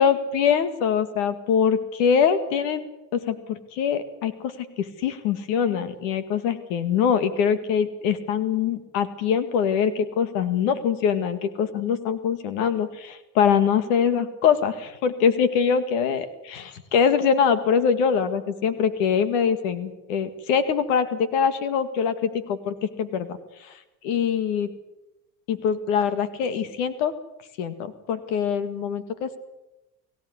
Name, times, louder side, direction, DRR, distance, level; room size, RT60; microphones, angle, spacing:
voice 1, 0.0-2.8 3.1-23.4 24.0-24.7 25.5-27.1 27.6-29.4, left 7 dB, 90° left, 12 dB, 2.0 m, -23 dB
23.5 x 16.0 x 9.7 m, 0.96 s
supercardioid pair, 90°, 36 cm